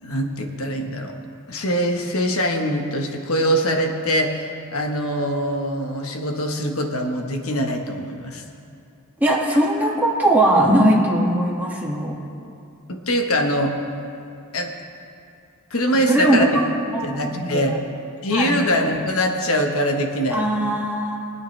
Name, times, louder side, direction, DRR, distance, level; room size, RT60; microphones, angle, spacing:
voice 1, 0.0-1.2 1.5-8.4 12.9-13.8 14.5-14.7 15.7-16.5 17.0-17.8 18.2-20.5, equal, 70° left, 3 dB, 1.3 m, -23 dB
voice 2, 9.2-12.1 16.1-16.6 16.9-17.7 18.3-18.6 20.3-21.2, right 1 dB, 10° right, -5 dB, 2.0 m, -19 dB
23.5 x 8.9 x 3.3 m, 2.6 s
head